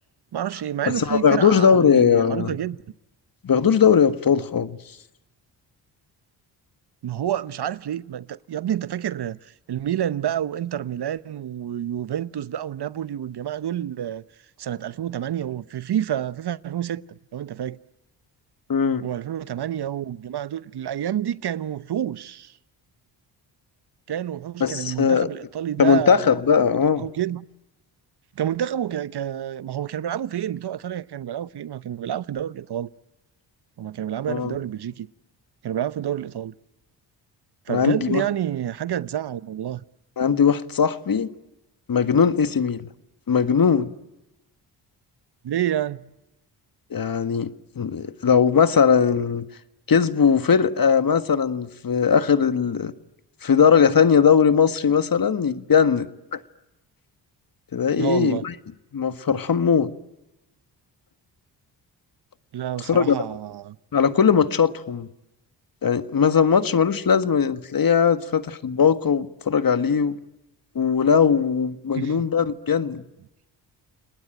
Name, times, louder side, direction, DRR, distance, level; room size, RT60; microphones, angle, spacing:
voice 1, 0.3-2.8 7.0-14.2 14.6-17.0 17.3-17.8 19.0-22.5 24.1-26.3 27.0-27.5 28.4-32.9 33.8-35.1 35.6-36.5 37.7-39.8 45.4-46.1 57.9-58.5 62.5-63.8 71.9-72.3, right 10 dB, 55° right, 0.9 m, -28 dB
voice 2, 0.9-2.5 3.4-4.8 18.7-19.0 24.6-25.3 25.8-27.1 34.3-34.6 37.7-38.2 40.2-41.3 41.9-42.9 43.3-43.9 46.9-49.4 49.9-52.9 53.4-56.1 56.3-56.4 57.7-58.5 58.9-59.9 62.9-63.2 63.9-65.1 65.8-70.2 70.7-73.0, left 6 dB, 45° left, 1.6 m, -19 dB
30.0 x 19.5 x 9.0 m
supercardioid pair, 55°, 48 cm